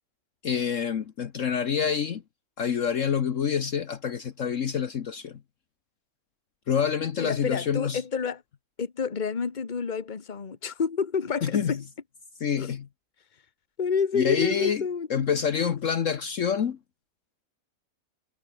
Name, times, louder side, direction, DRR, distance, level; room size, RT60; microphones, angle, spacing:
voice 1, 0.4-2.2 2.6-5.4 6.7-8.0 11.4-11.8 12.4-12.9 14.1-14.8 15.1-16.8, left 7 dB, 60° left, 1.3 m, -27 dB
voice 2, 7.2-8.4 8.8-11.8 12.6-12.7 13.8-15.3, left 6 dB, 30° left, 1.4 m, -29 dB
omnidirectional pair, 1.6 m